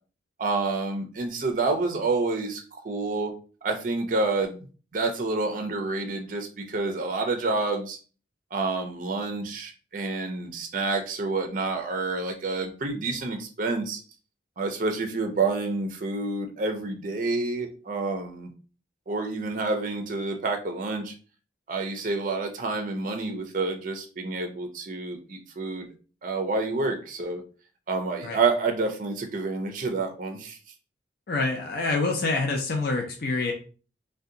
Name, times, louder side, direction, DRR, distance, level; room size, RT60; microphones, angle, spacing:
voice 1, 0.4-3.3 3.6-4.7 4.9-8.0 8.5-14.0 14.6-18.5 19.1-21.1 21.7-25.9 26.2-27.4 27.9-30.6, right 3 dB, 45° right, 5 dB, 0.4 m, -28 dB
voice 2, 31.3-33.5, left 3 dB, 50° left, 1 dB, 0.5 m, -26 dB
2.6 x 2.2 x 3.7 m, 0.38 s
head